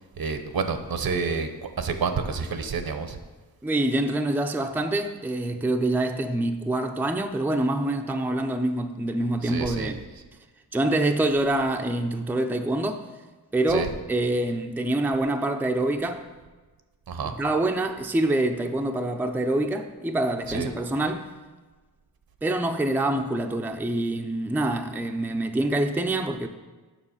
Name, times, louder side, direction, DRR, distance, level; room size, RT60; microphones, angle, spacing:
voice 1, 0.2-1.5 1.8-3.2 9.4-9.9 13.7-13.9 17.1-17.3 20.5-20.7, right 5 dB, 65° right, 0.8 m, -29 dB
voice 2, 3.6-10.0 10.7-13.0 13.5-16.2 17.4-21.3 22.4-26.5, right 1 dB, 5° right, 0.5 m, -26 dB
7.2 x 6.1 x 5.5 m
wide cardioid pair, 85°, 39 cm